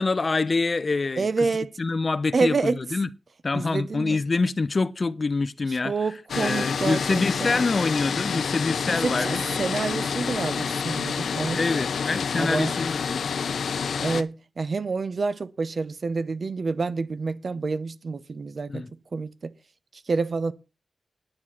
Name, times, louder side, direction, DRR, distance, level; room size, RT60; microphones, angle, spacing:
voice 1, 0.0-1.5 1.8-3.1 3.4-6.0 6.3-9.4 11.5-13.2 18.7-18.9, left 3 dB, 45° left, 0.7 m, -26 dB
voice 2, 1.2-1.7 2.3-2.8 3.5-4.2 5.8-7.6 8.9-11.6 12.4-12.8 14.0-19.5 19.9-20.5, right 4 dB, 55° right, 0.9 m, -28 dB
sound 1, 6.3-14.2, left 6 dB, 90° left, 0.7 m, -28 dB
10.0 x 9.8 x 6.0 m
wide cardioid pair, 85°, 0 cm